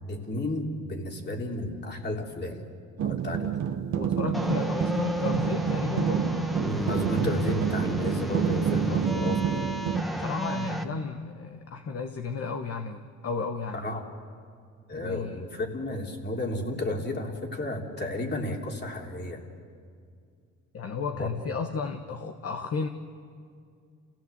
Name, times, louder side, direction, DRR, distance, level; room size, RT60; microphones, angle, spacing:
voice 1, 0.0-2.6 3.0-3.5 6.6-9.7 13.7-14.1 14.9-19.4 21.2-21.3, left 1 dB, 35° left, 2 dB, 3.3 m, -32 dB
sound 1, 3.0-10.0, right 8 dB, 70° right, 1.4 m, -28 dB
voice 2, 3.9-6.3 8.9-9.0 10.2-13.8 14.9-15.4 20.7-22.9, left 5 dB, 50° left, 6 dB, 1.2 m, -33 dB
sound 2, 4.3-10.8, right 1 dB, ahead, 1.6 m, -31 dB
28.5 x 16.5 x 8.1 m, 2.3 s
cardioid pair, 90°, 30 cm